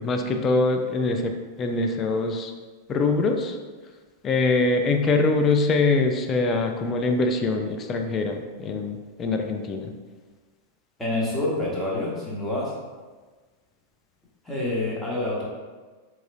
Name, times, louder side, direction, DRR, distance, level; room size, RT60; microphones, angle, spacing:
voice 1, 0.0-1.3 1.6-2.5 2.9-3.5 4.2-9.9, left 3 dB, 25° left, 4 dB, 0.3 m, -23 dB
voice 2, 11.0-12.7 14.4-15.4, left 2 dB, 5° left, -7 dB, 1.0 m, -27 dB
3.7 x 3.0 x 2.6 m, 1.4 s
figure-of-eight pair, 90°, 0 cm